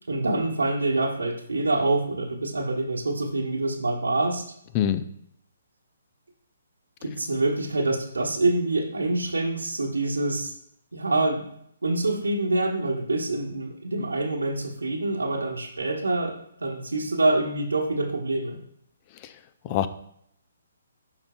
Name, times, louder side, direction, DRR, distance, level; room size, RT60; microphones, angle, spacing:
voice 1, 0.1-4.4 7.0-10.5 10.9-11.4 11.8-18.6, right 2 dB, 80° right, 2 dB, 1.2 m, -26 dB
voice 2, 4.7-5.0 19.6-19.9, left 10 dB, 30° left, 12 dB, 0.4 m, -23 dB
11.0 x 3.9 x 2.3 m, 0.71 s
figure-of-eight pair, 135°, 0 cm